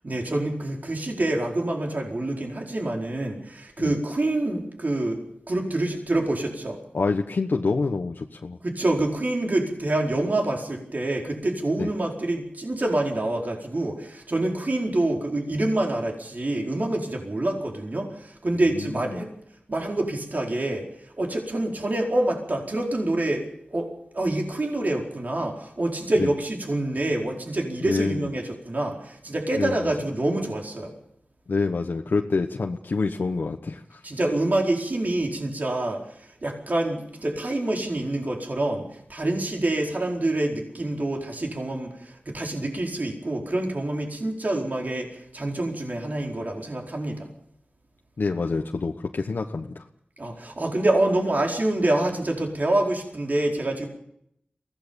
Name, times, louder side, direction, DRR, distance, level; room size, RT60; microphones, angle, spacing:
voice 1, 0.0-6.8 8.6-19.3 19.7-20.9 21.2-30.9 34.0-47.3 50.2-53.9, right 1 dB, 55° right, 0 dB, 4.6 m, -26 dB
voice 2, 6.9-8.6 11.8-11.9 18.5-19.2 26.2-26.3 27.8-28.3 29.5-29.9 31.5-34.0 48.2-49.8, left 4 dB, 80° left, 3 dB, 1.2 m, -27 dB
23.0 x 17.0 x 7.1 m, 0.75 s
cardioid pair, 50°, 3 cm